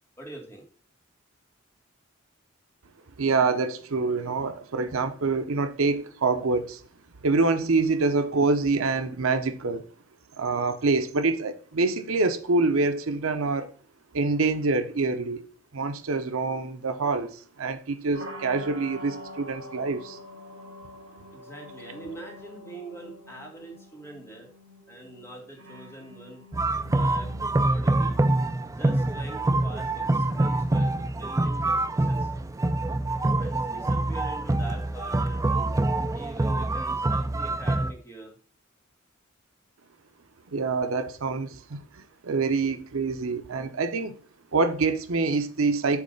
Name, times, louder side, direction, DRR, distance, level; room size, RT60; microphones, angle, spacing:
voice 1, 0.2-0.6 21.3-24.5 24.9-26.4 26.9-27.3 27.6-28.2 28.7-32.3 33.3-35.7 36.1-38.3, right 2 dB, 10° left, 1.9 m, -43 dB
voice 2, 3.2-6.8 7.2-9.8 10.4-13.7 14.1-15.4 15.7-20.2 40.5-44.1 44.5-46.0, right 3 dB, 80° right, 0.7 m, -26 dB
sound 1, 18.1-37.9, left 1 dB, 60° right, 3.6 m, -48 dB
sound 2, 26.5-37.9, right 2 dB, 15° right, 0.3 m, -25 dB
8.1 x 3.2 x 5.2 m
head